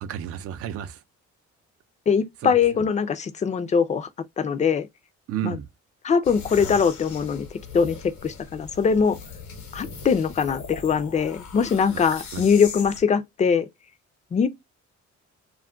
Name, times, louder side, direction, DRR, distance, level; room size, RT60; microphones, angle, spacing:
voice 1, 0.0-1.0 2.4-2.8 5.3-5.7 11.9-12.0 12.3-12.4, right 10 dB, 50° right, 0.4 m, -32 dB
voice 2, 2.1-4.1 4.4-4.9 5.4-5.6 6.0-7.5 7.7-9.2 9.7-13.7 14.3-14.5, left 6 dB, 25° left, 0.4 m, -22 dB
sound 1, 6.2-13.0, left 5 dB, 75° left, 0.9 m, -39 dB
2.3 x 2.1 x 3.6 m
cardioid pair, 90°, 30 cm